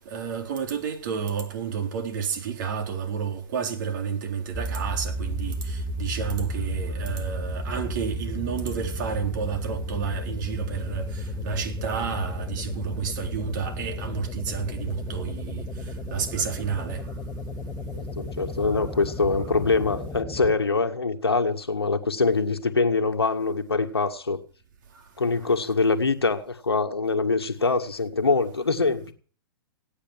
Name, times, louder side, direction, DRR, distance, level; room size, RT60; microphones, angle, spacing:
voice 1, 0.1-15.6 16.1-17.0 18.6-18.8, right 7 dB, 55° right, 3.9 m, -31 dB
sound 1, 4.5-20.5, equal, 15° left, 2.6 m, -33 dB
voice 2, 17.9-24.4 25.2-29.1, left 4 dB, 90° left, 1.8 m, -24 dB
17.0 x 9.9 x 7.4 m
hypercardioid pair, 115°, 13 cm